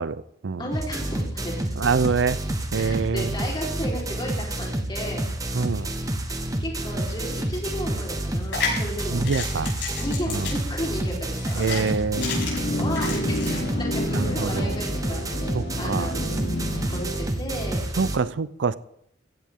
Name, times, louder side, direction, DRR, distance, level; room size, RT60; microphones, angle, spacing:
voice 1, 0.0-0.6 1.8-2.4 2.7-3.3 5.5-5.9 9.1-9.7 10.3-10.5 11.6-12.3 14.1-14.8 15.5-16.1 18.0-18.8, right 5 dB, 75° right, 0.5 m, -25 dB
voice 2, 0.6-1.8 2.7-5.3 6.3-6.4 6.6-9.3 10.0-11.9 12.8-16.3 16.9-17.9, equal, 25° left, 4.0 m, -34 dB
sound 1, 0.7-18.2, right 1 dB, 20° right, 1.2 m, -29 dB
sound 2, 8.3-13.6, left 5 dB, 90° left, 6.5 m, -32 dB
sound 3, 12.1-17.4, left 1 dB, 65° left, 3.1 m, -30 dB
15.5 x 15.5 x 3.7 m
head